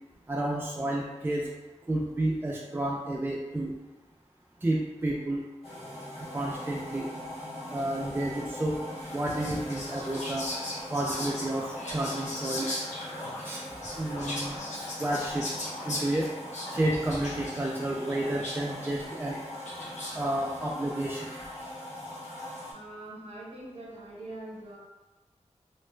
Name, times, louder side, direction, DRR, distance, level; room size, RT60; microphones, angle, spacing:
voice 1, 0.3-1.5 1.9-3.7 4.6-5.4 6.3-7.1 7.7-8.8 9.1-10.5 10.9-12.7 13.4-13.6 14.0-15.5 15.9-16.3 16.7-19.4 20.1-21.3, right 1 dB, 15° right, -2 dB, 0.3 m, -30 dB
sound 1, 5.6-22.7, left 1 dB, 55° left, 1.2 m, -41 dB
Whispering, 9.0-20.3, left 1 dB, 75° left, 0.8 m, -39 dB
voice 2, 22.7-24.8, right 1 dB, 55° right, -6 dB, 1.1 m, -43 dB
2.9 x 2.1 x 3.1 m, 1.2 s
wide cardioid pair, 75°, 12 cm